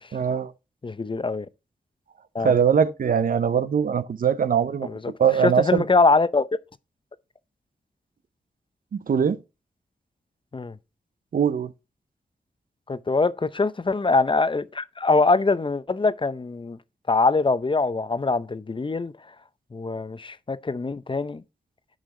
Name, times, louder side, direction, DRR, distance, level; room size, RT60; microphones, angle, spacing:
voice 1, 0.1-0.5 2.4-4.9 5.2-5.8 8.9-9.4 11.3-11.7, right 7 dB, 65° right, 0.6 m, -21 dB
voice 2, 0.8-1.5 2.3-2.5 4.8-5.0 5.4-6.5 10.5-10.8 12.9-16.8 17.1-19.1 19.7-21.4, left 3 dB, 35° left, 0.6 m, -23 dB
10.5 x 4.8 x 3.7 m
cardioid pair, 45°, 15 cm